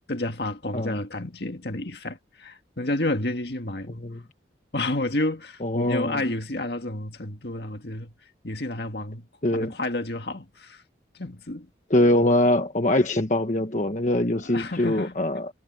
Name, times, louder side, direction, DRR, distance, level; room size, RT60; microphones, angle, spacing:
voice 1, 0.1-4.0 4.7-8.1 8.4-10.8 11.1-11.7 14.3-15.4, left 2 dB, 60° left, 1.9 m, -30 dB
voice 2, 3.9-4.2 5.6-6.2 9.4-9.7 11.9-15.5, left 1 dB, 40° left, 1.3 m, -23 dB
head